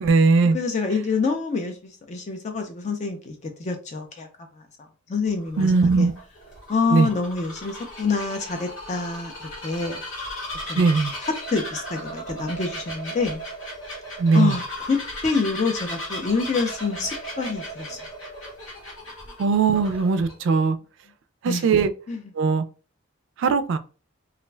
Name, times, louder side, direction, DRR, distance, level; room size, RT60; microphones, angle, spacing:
voice 1, 0.0-0.6 5.6-6.1 6.9-7.1 10.7-11.1 14.2-14.6 19.4-20.8 21.4-21.9 22.4-22.6 23.4-23.8, right 4 dB, 65° right, 0.3 m, -19 dB
voice 2, 0.5-4.3 5.1-6.1 6.7-9.3 9.6-10.0 10.7-10.9 11.2-13.4 14.3-18.0 21.5-21.7 22.1-22.2, left 4 dB, 35° left, 0.4 m, -26 dB
Bird vocalization bird call bird song, 5.3-20.3, equal, 75° left, 1.3 m, -36 dB
2.4 x 2.2 x 3.2 m
head